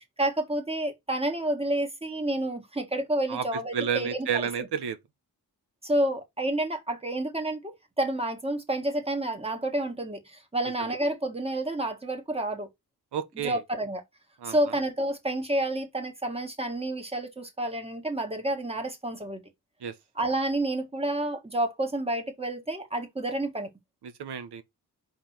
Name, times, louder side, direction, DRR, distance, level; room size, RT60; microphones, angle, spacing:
voice 1, 0.0-4.3 4.6-4.7 5.8-12.7 13.4-14.0 14.4-19.4 20.2-23.7, right 1 dB, 15° right, 1.6 m, -29 dB
voice 2, 3.3-5.0 10.8-10.9 13.1-13.6 14.4-14.7 19.8-19.9 24.0-24.6, right 7 dB, 85° right, 1.2 m, -31 dB
5.3 x 3.7 x 5.9 m
wide cardioid pair, 110°, 39 cm